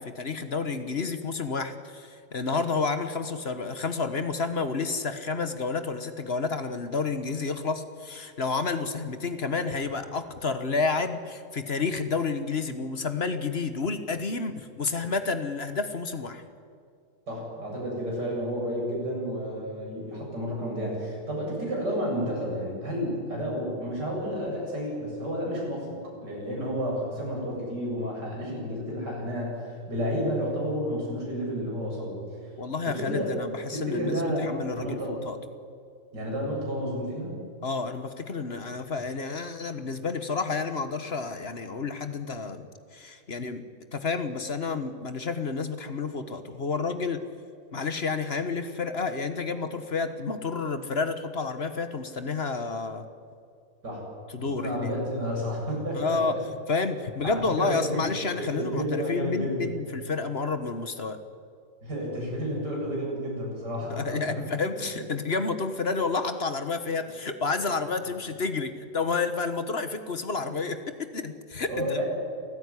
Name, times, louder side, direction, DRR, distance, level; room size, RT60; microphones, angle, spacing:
voice 1, 0.0-16.4 32.6-35.4 37.6-42.7 42.9-43.7 43.9-47.2 47.7-53.1 54.3-54.9 55.9-56.4 56.7-61.2 63.9-72.0, left 4 dB, 40° left, 9 dB, 1.4 m, -30 dB
voice 2, 17.3-25.9 26.2-32.2 32.8-33.3 33.7-35.2 36.1-37.4 53.8-54.0 54.4-56.4 57.2-58.0 58.4-59.7 61.8-64.6 71.7-72.0, equal, 75° right, -2 dB, 8.5 m, -31 dB
28.0 x 15.5 x 9.9 m, 2.3 s
omnidirectional pair, 1.8 m